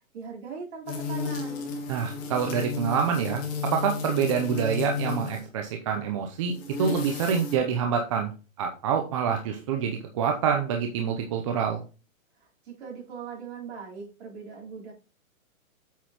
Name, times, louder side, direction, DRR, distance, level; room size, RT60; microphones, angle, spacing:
voice 1, 0.1-1.6 12.4-14.9, right 5 dB, 50° right, -2 dB, 4.1 m, -40 dB
sound 1, 0.9-5.5 6.4-7.6, left 5 dB, 30° left, 2.3 m, -33 dB
voice 2, 1.9-8.3 8.6-11.8, right 7 dB, 25° right, 3 dB, 0.6 m, -27 dB
8.1 x 6.2 x 3.0 m, 0.33 s
hypercardioid pair, 150°, 42 cm